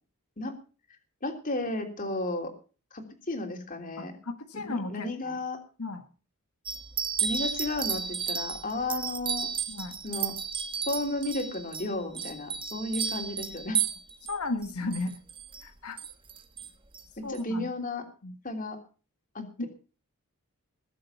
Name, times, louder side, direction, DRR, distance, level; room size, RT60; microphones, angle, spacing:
voice 1, 1.2-2.5 2.9-4.1 4.6-5.6 7.2-9.5 10.0-10.3 10.9-13.8 17.2-18.0 18.4-18.8 19.3-19.7, left 2 dB, 35° left, 4 dB, 3.2 m, -33 dB
voice 2, 4.0-5.4 5.8-6.0 9.7-10.0 14.3-15.2 15.6-16.0 17.2-17.7 18.2-18.3 19.4-19.7, left 2 dB, 80° left, 6 dB, 1.5 m, -35 dB
sound 1, 6.7-14.3 14.6-15.6 16.0-16.7 16.9-17.0 17.3-17.4, right 7 dB, 25° right, 1.3 m, -33 dB
21.5 x 7.7 x 5.7 m, 0.36 s
head